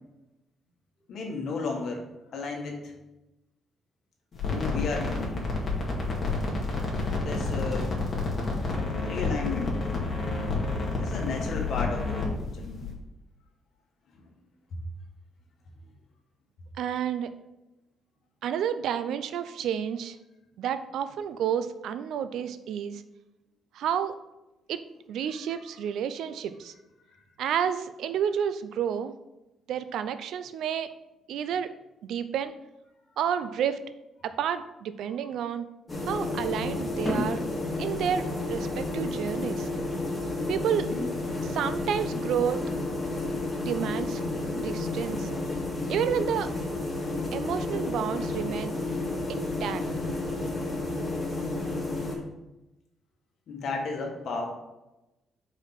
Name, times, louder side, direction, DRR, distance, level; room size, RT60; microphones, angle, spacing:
voice 1, 1.1-2.1 2.3-2.9 4.5-5.4 7.2-8.0 9.0-9.8 11.0-12.8 53.5-54.5, left 4 dB, 65° left, 1 dB, 1.6 m, -33 dB
sound 1, 4.3-12.9, left 3 dB, 45° left, 2.0 m, -29 dB
voice 2, 16.8-17.3 18.4-20.2 20.6-23.0 23.7-24.1 24.7-26.7 27.4-29.1 29.7-30.9 31.3-31.7 32.0-32.5 33.2-33.8 34.2-35.7 36.0-37.4 37.8-39.7 40.5-40.9 41.4-42.6 43.6-45.3 45.9-46.5 47.3-48.7 49.3-49.8, right 8 dB, 75° right, 12 dB, 0.5 m, -30 dB
sound 2, 35.9-52.2, left 2 dB, 20° left, 1.9 m, -31 dB
4.9 x 4.7 x 5.9 m, 0.97 s
cardioid pair, 90°, 0 cm